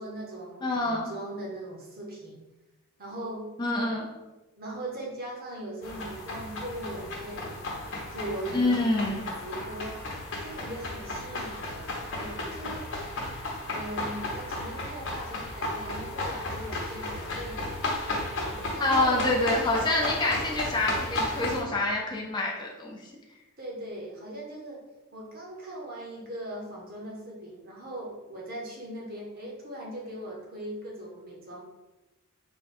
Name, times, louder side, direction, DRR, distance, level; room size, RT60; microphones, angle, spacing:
voice 1, 0.0-2.4 3.0-3.5 4.6-9.1 9.4-10.1 10.4-12.9 13.7-17.9 18.3-19.6 23.6-24.8 25.1-31.6, right 1 dB, 40° right, -2 dB, 0.8 m, -39 dB
voice 2, 0.6-1.1 3.6-4.1 8.5-9.2 18.8-23.0, left 2 dB, 20° left, -2 dB, 0.5 m, -26 dB
sound 1, 5.8-21.6, left 2 dB, 55° left, 0.9 m, -34 dB
3.6 x 2.3 x 4.2 m, 1.1 s
head